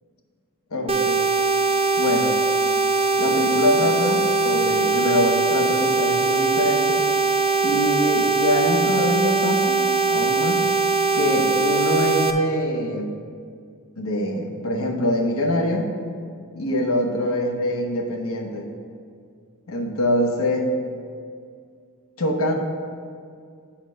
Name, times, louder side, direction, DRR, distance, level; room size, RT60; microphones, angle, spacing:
voice 1, 0.7-1.2 2.0-2.4 3.2-7.0 7.6-10.7 11.1-13.1 14.0-15.9 16.5-18.7 19.7-20.7 22.2-22.5, left 1 dB, 80° left, 3 dB, 0.9 m, -24 dB
sound 1, 0.9-12.3, right 4 dB, 30° right, 0.5 m, -21 dB
7.4 x 4.4 x 6.3 m, 2.2 s
head